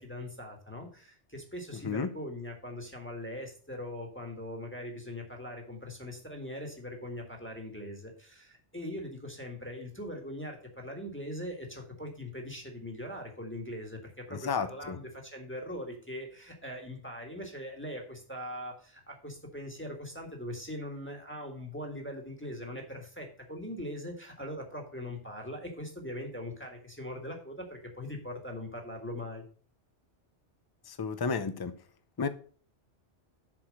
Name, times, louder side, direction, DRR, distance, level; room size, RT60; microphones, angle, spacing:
voice 1, 0.0-29.5, left 1 dB, 10° left, 1.6 m, -41 dB
voice 2, 1.7-2.1 14.3-15.0 30.8-31.7 32.2-32.3, left 5 dB, 30° left, 0.5 m, -32 dB
7.1 x 4.9 x 6.4 m
omnidirectional pair, 1.2 m